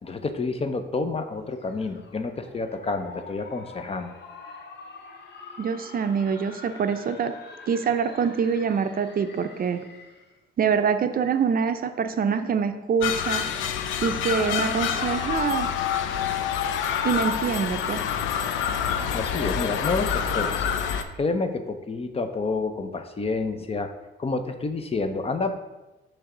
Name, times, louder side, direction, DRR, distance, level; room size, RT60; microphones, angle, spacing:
voice 1, 0.0-4.1 19.1-20.7 21.2-23.9 24.2-25.5, left 3 dB, 30° left, 8 dB, 0.6 m, -29 dB
sound 1, 1.5-10.4, left 4 dB, 60° left, 0.9 m, -46 dB
voice 2, 5.6-7.4 7.7-9.8 10.6-13.4 14.0-15.7 17.0-18.1, right 6 dB, 45° right, 9 dB, 0.5 m, -25 dB
sound 2, 13.0-21.0, left 8 dB, 80° left, 0.6 m, -27 dB
6.3 x 3.4 x 6.0 m, 1.1 s
cardioid pair, 90°, 20 cm